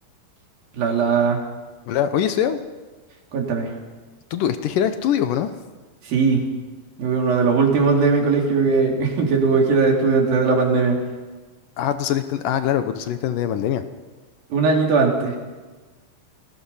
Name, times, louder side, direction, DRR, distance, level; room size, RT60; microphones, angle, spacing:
voice 1, 0.7-1.4 3.3-3.7 6.0-6.5 7.0-11.0 14.5-15.4, right 4 dB, 75° right, 0 dB, 5.0 m, -19 dB
voice 2, 1.9-2.6 4.3-5.5 11.8-13.8, left 10 dB, 70° left, 10 dB, 2.4 m, -22 dB
28.0 x 19.5 x 5.6 m, 1.3 s
omnidirectional pair, 4.2 m